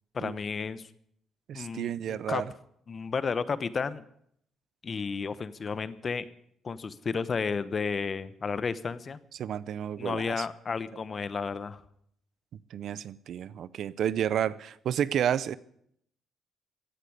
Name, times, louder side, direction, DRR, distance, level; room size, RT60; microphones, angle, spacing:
voice 1, 0.1-0.9 1.5-2.4 2.9-4.0 4.8-6.3 6.6-9.2 10.0-11.8, left 5 dB, 40° left, 1.0 m, -32 dB
voice 2, 1.5-2.5 9.4-10.5 12.7-15.6, right 9 dB, 70° right, 0.6 m, -31 dB
16.0 x 8.4 x 9.7 m
cardioid pair, 90°, 0 cm